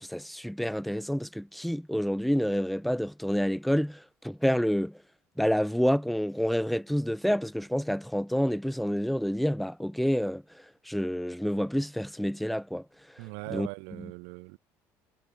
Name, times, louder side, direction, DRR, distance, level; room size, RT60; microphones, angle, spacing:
voice 1, 0.0-5.0 5.4-10.4 10.8-12.8 13.5-13.7, equal, ahead, 1.1 m, -28 dB
voice 2, 13.2-14.6, right 40 dB or more, 85° right, 2.0 m, -40 dB
supercardioid pair, 105°, 7 cm